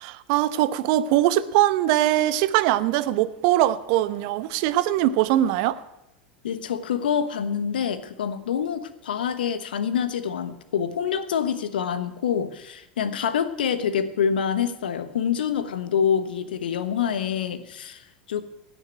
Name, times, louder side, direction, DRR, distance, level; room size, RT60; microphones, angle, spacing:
voice 1, 0.0-5.8, right 13 dB, 55° right, 15 dB, 0.8 m, -22 dB
voice 2, 6.4-18.4, left 8 dB, 75° left, 12 dB, 1.2 m, -26 dB
16.5 x 6.7 x 9.0 m, 0.90 s
figure-of-eight pair, 85°, 5 cm